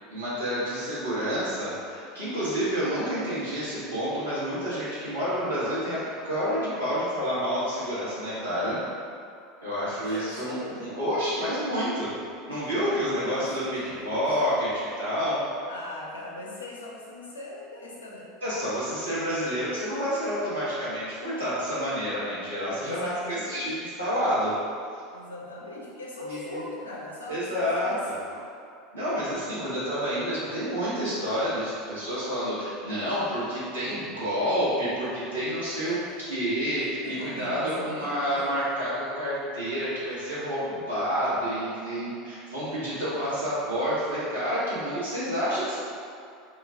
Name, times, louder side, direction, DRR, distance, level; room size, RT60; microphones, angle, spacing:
voice 1, 0.1-8.8 9.6-12.1 12.5-13.8 14.0-15.4 18.4-24.5 26.2-26.6 27.3-27.9 28.9-36.0 36.2-45.8, equal, 85° right, -12 dB, 1.3 m, -29 dB
voice 2, 9.9-10.8 12.9-14.3 15.7-18.3 22.8-23.7 25.1-28.5 35.8-36.4 36.7-38.5, left 1 dB, 80° left, -3 dB, 0.5 m, -40 dB
2.9 x 2.2 x 3.7 m, 2.4 s
figure-of-eight pair, 80°, 0 cm